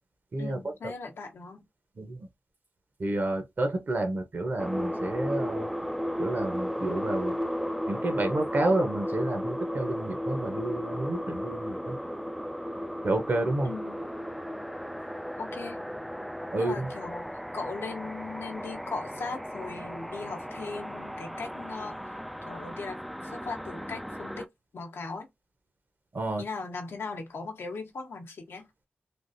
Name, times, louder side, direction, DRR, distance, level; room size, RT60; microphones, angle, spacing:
voice 1, 0.4-1.7 13.6-14.0 15.4-15.8 16.6-22.2 22.4-24.5 24.7-25.3 26.4-28.7, left 4 dB, 75° left, 0.8 m, -39 dB
voice 2, 3.0-5.7 6.2-7.3 7.9-12.0 13.0-13.7 16.5-16.8 26.1-26.4, right 2 dB, 50° right, 0.9 m, -29 dB
sound 1, 4.6-24.5, equal, ahead, 0.3 m, -35 dB
3.4 x 2.4 x 2.6 m
wide cardioid pair, 75°, 4 cm